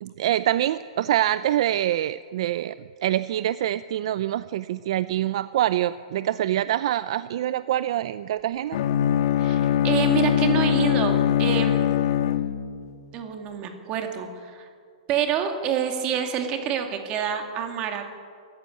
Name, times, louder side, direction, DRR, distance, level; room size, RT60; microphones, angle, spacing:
voice 1, 0.0-2.8 3.0-8.8, right 12 dB, 55° right, 15 dB, 0.5 m, -25 dB
Bowed string instrument, 8.7-12.9, left 10 dB, 55° left, 1.4 m, -22 dB
voice 2, 9.4-11.8 13.1-14.7 15.1-18.0, right 8 dB, 25° right, 5 dB, 2.3 m, -27 dB
22.5 x 14.5 x 9.4 m, 2.3 s
hypercardioid pair, 165°, 4 cm